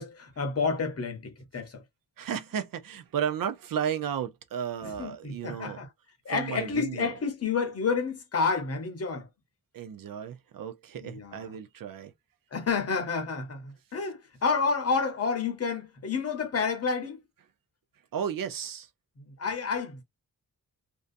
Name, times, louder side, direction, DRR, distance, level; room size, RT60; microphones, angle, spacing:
voice 1, 0.0-1.8 4.8-5.9 6.2-9.3 11.0-11.5 12.5-17.2 19.2-20.0, left 5 dB, 40° left, 0.8 m, -30 dB
voice 2, 2.2-5.8 6.3-7.1 9.7-12.1 18.1-18.9, right 8 dB, 65° right, 0.5 m, -33 dB
2.6 x 2.2 x 2.5 m
wide cardioid pair, 170°, 36 cm